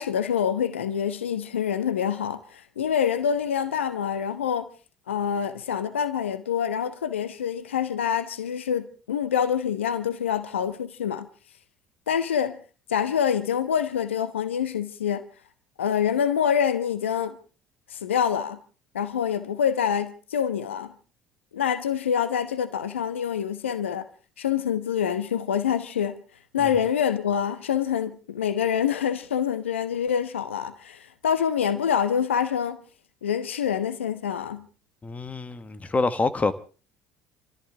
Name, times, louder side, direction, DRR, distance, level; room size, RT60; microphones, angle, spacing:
voice 1, 0.0-4.7 5.1-11.3 12.1-12.6 12.9-15.2 15.8-17.4 17.9-18.6 18.9-20.9 21.5-24.1 24.4-26.2 26.5-32.8 33.2-34.7, left 8 dB, 85° left, 1.0 m, -26 dB
voice 2, 35.0-36.5, left 3 dB, 20° left, 1.5 m, -26 dB
29.0 x 14.0 x 3.4 m
figure-of-eight pair, 60°, 6 cm